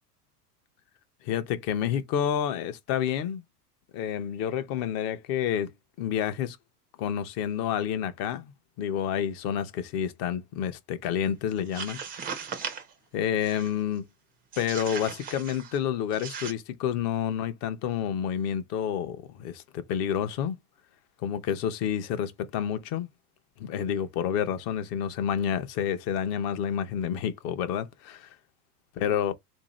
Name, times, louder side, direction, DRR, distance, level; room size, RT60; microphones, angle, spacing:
voice 1, 1.2-3.4 3.9-5.7 6.0-6.6 7.0-8.5 8.8-12.0 13.1-14.0 14.6-20.6 21.2-23.1 23.6-28.3 29.0-29.3, left 9 dB, 35° left, 0.5 m, -29 dB
sound 1, 11.6-12.9 13.4-13.8 14.5-15.8 16.1-16.5, right 6 dB, 20° right, 0.4 m, -38 dB
3.4 x 2.7 x 3.0 m
supercardioid pair, 130°, 47 cm